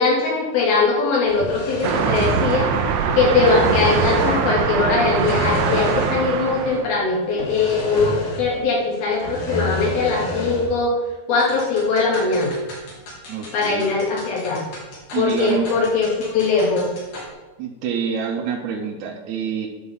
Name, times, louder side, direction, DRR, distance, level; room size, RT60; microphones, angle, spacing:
voice 1, 0.0-2.7 3.1-11.0 11.3-12.6 13.5-14.6 15.1-16.9, left 4 dB, 80° left, -4 dB, 4.4 m, -21 dB
sound 1, 1.3-3.0 3.3-4.5 5.0-6.4 6.7-6.8 7.4-8.6 8.9-10.8, left 1 dB, 40° left, 3.2 m, -28 dB
sound 2, 1.8-6.9, right 7 dB, 90° right, 2.7 m, -22 dB
sound 3, 11.4-17.3, left 1 dB, 60° left, 4.6 m, -39 dB
voice 2, 13.3-13.8 15.1-15.7 17.6-19.7, right 7 dB, 70° right, -1 dB, 2.1 m, -26 dB
9.9 x 5.9 x 7.1 m, 1.2 s
omnidirectional pair, 4.3 m